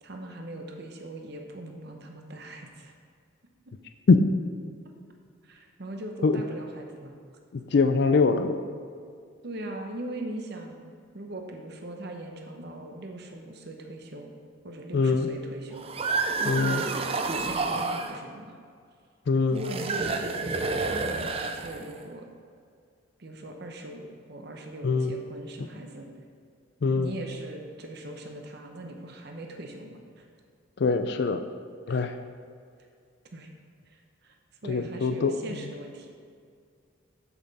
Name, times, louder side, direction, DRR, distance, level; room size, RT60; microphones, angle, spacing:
voice 1, 0.0-2.9 5.4-7.2 9.4-10.8 11.1-14.3 14.6-15.9 16.4-16.9 17.3-18.6 19.5-22.3 23.2-26.1 27.0-30.3 31.9-32.1 33.3-33.5 33.9-34.4 34.6-36.1, right 1 dB, 50° right, 3 dB, 0.8 m, -40 dB
voice 2, 7.5-8.6 14.9-15.3 16.5-16.8 19.3-19.6 24.8-25.1 26.8-27.1 30.8-31.4 31.9-32.2 34.7-35.3, left 4 dB, 55° left, 8 dB, 0.4 m, -23 dB
sound 1, 15.7-18.2 19.6-22.0, right 3 dB, 30° right, 0.4 m, -29 dB
7.5 x 7.0 x 4.1 m, 2.2 s
head